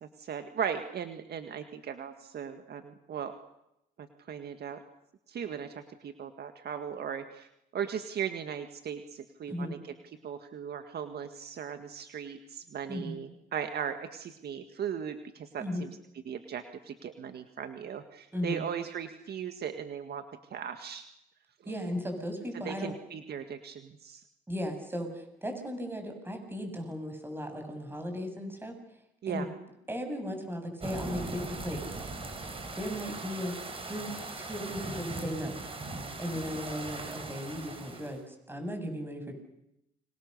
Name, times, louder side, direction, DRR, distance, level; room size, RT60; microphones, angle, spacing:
voice 1, 0.2-3.3 4.0-4.8 5.3-5.7 6.0-7.5 7.7-9.8 10.2-15.9 16.3-20.2 20.5-21.1 22.6-24.2 29.2-29.5, right 8 dB, 60° right, 8 dB, 1.9 m, -37 dB
voice 2, 21.7-22.9 24.5-28.7 29.3-29.5 29.9-32.0 32.7-33.6 33.9-34.1 34.4-35.6 36.2-39.3, equal, 10° right, 5 dB, 7.4 m, -36 dB
sound 1, 30.8-38.2, right 2 dB, 30° right, 5.1 m, -39 dB
29.5 x 25.0 x 6.8 m, 0.82 s
cardioid pair, 100°, 19 cm